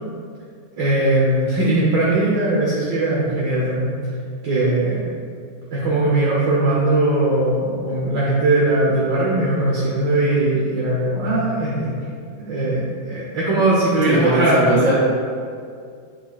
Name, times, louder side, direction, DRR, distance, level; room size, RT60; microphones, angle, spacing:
voice 1, 0.8-3.9 4.4-5.0 5.7-12.0 12.3-14.6, right 2 dB, 60° right, -6 dB, 1.6 m, -19 dB
voice 2, 14.0-15.0, right 1 dB, 40° right, -6 dB, 2.0 m, -19 dB
8.3 x 7.2 x 2.4 m, 2.3 s
omnidirectional pair, 2.3 m